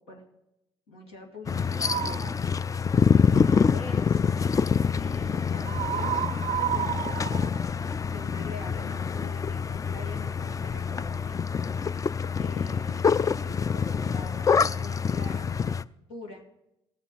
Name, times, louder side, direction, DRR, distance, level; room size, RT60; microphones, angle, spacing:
voice 1, 0.9-2.3 3.1-4.5 4.9-7.3 8.1-11.4 12.4-15.8 16.1-16.4, left 2 dB, 85° left, 0 dB, 2.2 m, -44 dB
sound 1, 1.5-15.8, left 6 dB, 25° left, 0.4 m, -26 dB
sound 2, 1.8-2.4 5.6-8.4, right 11 dB, 55° right, 0.4 m, -31 dB
sound 3, 4.6-12.2, left 5 dB, 45° left, 0.9 m, -49 dB
17.5 x 7.0 x 4.6 m, 0.84 s
hypercardioid pair, 55°, 14 cm